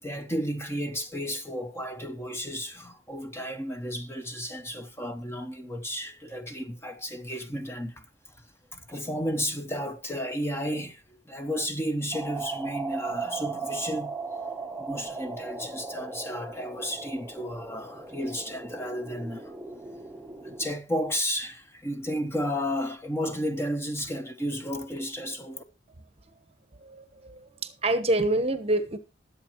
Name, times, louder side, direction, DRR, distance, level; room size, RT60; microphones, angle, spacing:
voice 1, 0.0-8.0 8.7-14.1 14.8-19.6 20.4-25.6, equal, 15° left, 1.1 m, -33 dB
sound 1, 12.1-20.7, right 4 dB, 5° right, 1.0 m, -37 dB
voice 2, 26.8-29.0, right 2 dB, 35° right, 1.1 m, -27 dB
21.0 x 8.1 x 3.1 m
head